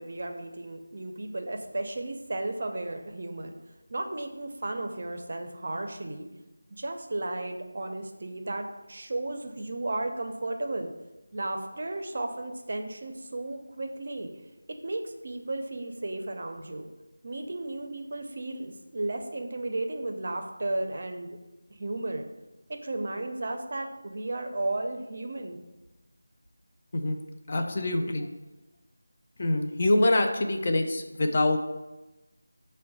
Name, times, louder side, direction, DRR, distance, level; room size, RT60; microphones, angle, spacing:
voice 1, 0.0-3.5 3.9-6.3 6.7-10.9 11.3-14.3 14.8-16.9 17.2-21.4 21.7-22.3 22.7-25.6, right 2 dB, 50° right, 5 dB, 0.4 m, -34 dB
voice 2, 27.5-28.3 29.4-31.6, left 2 dB, 35° left, 3 dB, 0.4 m, -25 dB
5.2 x 2.1 x 4.0 m, 1.1 s
figure-of-eight pair, 170°, 0 cm